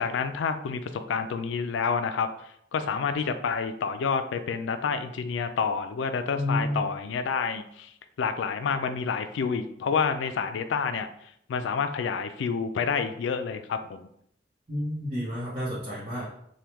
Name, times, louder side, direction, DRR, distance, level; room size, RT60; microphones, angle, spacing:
voice 1, 0.0-7.9 8.2-11.1 11.5-14.0, left 5 dB, 85° left, 9 dB, 0.3 m, -29 dB
voice 2, 6.4-6.8 14.7-16.3, left 1 dB, 40° right, -9 dB, 0.9 m, -30 dB
3.4 x 2.2 x 2.9 m, 0.70 s
head